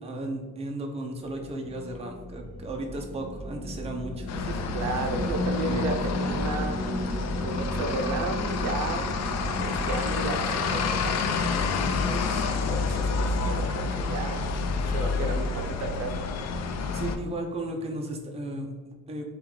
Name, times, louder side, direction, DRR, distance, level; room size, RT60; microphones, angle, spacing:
voice 1, 0.0-4.6 5.6-5.8 16.9-19.2, right 1 dB, 20° right, 2 dB, 0.5 m, -35 dB
sound 1, 1.2-14.8, left 1 dB, 25° left, 0.8 m, -34 dB
sound 2, 4.3-17.2, left 4 dB, 50° left, 0.5 m, -29 dB
voice 2, 4.7-6.8 7.4-9.1 9.6-14.5 14.9-16.3, right 3 dB, 60° right, 4 dB, 0.6 m, -33 dB
4.5 x 2.4 x 3.6 m, 1.4 s
cardioid pair, 120°, 33 cm